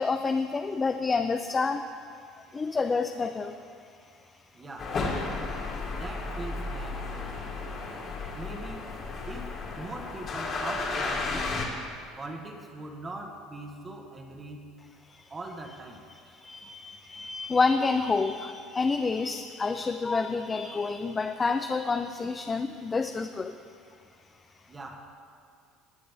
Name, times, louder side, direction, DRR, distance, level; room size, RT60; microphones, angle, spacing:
voice 1, 0.0-1.9 2.5-3.5 15.2-15.3 16.3-23.6, left 4 dB, 25° left, 6 dB, 0.4 m, -28 dB
voice 2, 4.5-5.0 5.9-7.5 8.3-8.9 9.2-11.5 12.2-14.7 15.3-16.1 24.7-25.0, right 2 dB, 25° right, 2 dB, 1.3 m, -41 dB
sound 1, 4.8-11.6, left 3 dB, 45° left, 2.3 m, -33 dB
19.0 x 8.4 x 3.5 m, 2.2 s
supercardioid pair, 105°, 0 cm